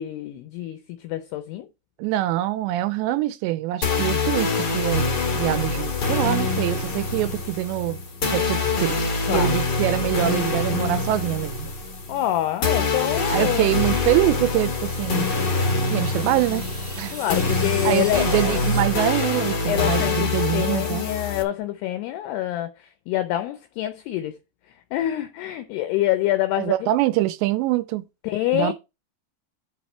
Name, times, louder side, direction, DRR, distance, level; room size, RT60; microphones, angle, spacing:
voice 1, 0.0-1.7 9.2-9.5 12.1-13.7 17.1-18.6 19.7-24.3 24.9-26.9 28.2-28.7, left 13 dB, 80° left, 2.5 m, -26 dB
voice 2, 2.0-8.0 8.3-11.7 13.3-15.3 15.9-16.7 17.0-17.2 17.8-21.1 26.6-28.1 28.5-28.7, right 15 dB, 85° right, 2.7 m, -24 dB
sound 1, 3.8-21.4, left 3 dB, 50° left, 1.2 m, -25 dB
sound 2, 13.9-19.8, right 1 dB, 15° right, 2.5 m, -40 dB
8.6 x 6.3 x 4.4 m
omnidirectional pair, 5.3 m